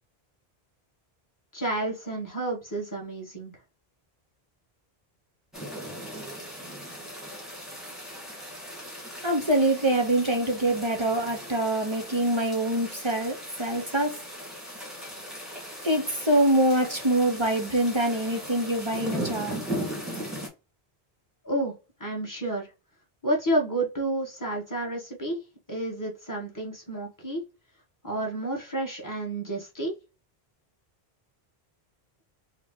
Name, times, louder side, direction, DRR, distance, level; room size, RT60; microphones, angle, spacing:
voice 1, 1.5-3.6 21.4-22.7 23.2-25.4 25.7-27.4 28.0-29.9, right 1 dB, 20° left, 1.3 m, -30 dB
sound 1, 5.5-20.5, right 1 dB, ahead, 1.2 m, -38 dB
voice 2, 9.2-14.2 15.8-19.6, right 1 dB, 35° right, 0.6 m, -25 dB
4.1 x 2.1 x 3.5 m
omnidirectional pair, 1.1 m